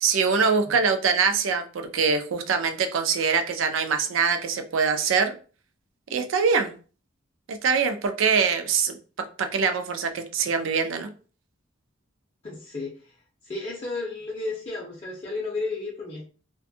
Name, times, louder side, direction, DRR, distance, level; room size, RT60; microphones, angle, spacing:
voice 1, 0.0-5.4 6.1-6.8 7.5-9.0 9.4-11.1, right 5 dB, 90° right, 7 dB, 0.4 m, -23 dB
voice 2, 12.4-13.1 13.4-16.3, left 3 dB, 30° left, -4 dB, 0.5 m, -33 dB
2.5 x 2.2 x 2.6 m, 0.38 s
head